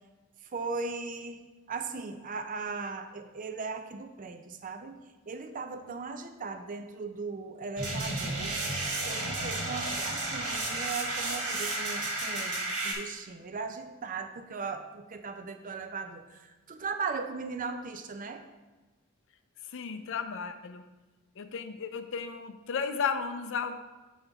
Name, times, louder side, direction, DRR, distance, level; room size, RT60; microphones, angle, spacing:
voice 1, 0.5-1.4 1.7-8.6 9.1-18.4, right 4 dB, 40° right, 7 dB, 0.5 m, -38 dB
sound 1, 7.8-12.9, right 2 dB, 70° right, 1.7 m, -32 dB
voice 2, 19.7-20.8 21.4-23.8, left 6 dB, 60° left, 9 dB, 0.5 m, -34 dB
7.4 x 5.4 x 3.4 m, 1.2 s
head